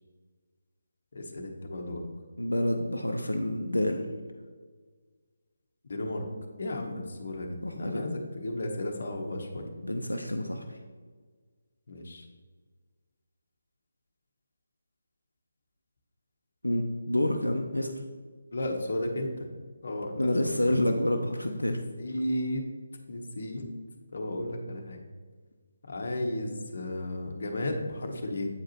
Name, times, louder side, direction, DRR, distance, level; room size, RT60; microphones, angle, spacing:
voice 1, 1.1-2.0 5.9-6.2 6.6-9.7 11.9-12.2 18.5-19.3 19.8-20.8 21.7-22.6 23.1-23.7 24.1-25.0 25.9-28.5, left 1 dB, 55° left, 2 dB, 1.1 m, -34 dB
voice 2, 2.4-4.0 7.6-8.1 9.8-10.8 16.6-17.9 20.2-21.8, left 1 dB, 90° left, 3 dB, 0.6 m, -28 dB
8.3 x 4.7 x 2.9 m, 1.5 s
figure-of-eight pair, 155°, 0 cm